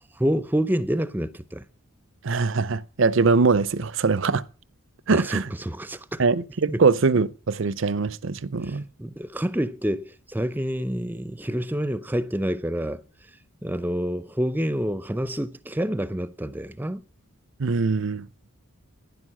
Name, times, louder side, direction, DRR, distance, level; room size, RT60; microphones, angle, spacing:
voice 1, 0.2-1.6 5.1-6.2 6.7-6.8 8.6-13.0 13.6-17.0, equal, 10° right, 0.5 m, -28 dB
voice 2, 2.2-4.4 5.1-5.5 6.2-8.8 17.6-18.3, right 4 dB, 60° right, 0.6 m, -22 dB
11.0 x 10.5 x 7.4 m
head